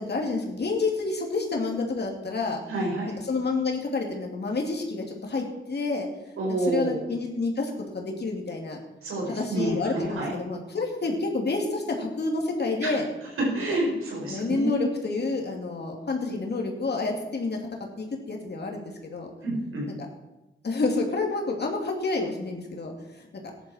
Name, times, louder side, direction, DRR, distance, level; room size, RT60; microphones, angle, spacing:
voice 1, 0.0-2.6 3.2-6.1 6.5-8.8 9.3-13.1 14.3-17.6 18.0-19.3 20.0-20.1 20.6-23.3, left 3 dB, 50° left, 1 dB, 2.5 m, -29 dB
voice 2, 2.7-3.1 6.4-7.0 9.0-10.3 12.8-12.9 13.5-14.8 19.4-19.9, right 1 dB, 85° right, -3 dB, 5.1 m, -28 dB
14.0 x 10.5 x 4.3 m, 1.0 s
cardioid pair, 65°, 21 cm